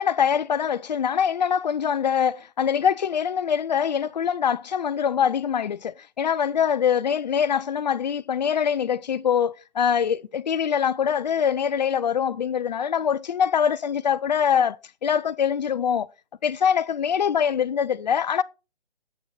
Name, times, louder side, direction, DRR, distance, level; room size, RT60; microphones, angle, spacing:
voice 1, 0.0-16.1 16.4-18.4, left 8 dB, 45° left, 0.5 m, -23 dB
7.9 x 6.2 x 4.0 m
hypercardioid pair, 150°, 32 cm